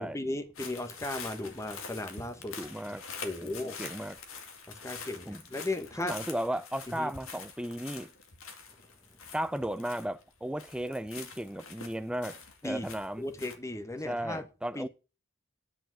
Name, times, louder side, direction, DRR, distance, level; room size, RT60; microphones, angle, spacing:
voice 1, 0.0-2.6 3.2-3.8 4.7-6.2 6.9-7.1 12.6-12.9 13.2-14.4 14.7-14.9, left 2 dB, 15° left, 1.1 m, -36 dB
sound 1, 0.6-10.3 10.6-13.6, left 5 dB, 80° left, 2.1 m, -45 dB
voice 2, 2.6-3.0 3.4-4.2 5.3-5.4 6.0-8.1 9.3-12.4 12.6-13.3 14.0-14.9, right 1 dB, 5° right, 0.4 m, -35 dB
10.0 x 5.1 x 7.5 m
head